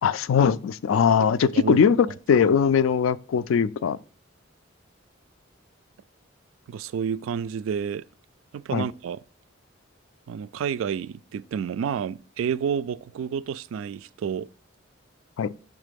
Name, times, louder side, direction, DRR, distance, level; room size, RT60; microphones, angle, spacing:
voice 1, 0.0-4.0 8.7-8.8 15.4-15.5, left 7 dB, 85° left, 0.3 m, -21 dB
voice 2, 1.0-1.8 6.7-8.0 8.5-9.2 10.3-14.5, right 7 dB, 90° right, 0.3 m, -30 dB
6.7 x 3.6 x 5.1 m
head